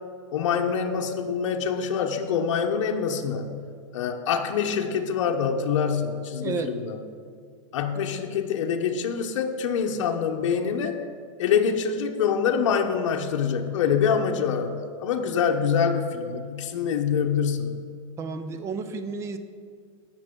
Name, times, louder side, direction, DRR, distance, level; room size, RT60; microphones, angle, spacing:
voice 1, 0.3-3.6 3.9-7.0 7.7-11.0 11.4-17.8, left 6 dB, 70° left, 3 dB, 0.8 m, -25 dB
voice 2, 6.4-6.8 18.2-19.4, right 4 dB, 15° right, 9 dB, 0.5 m, -31 dB
16.5 x 6.1 x 3.7 m, 2.1 s
supercardioid pair, 155°, 16 cm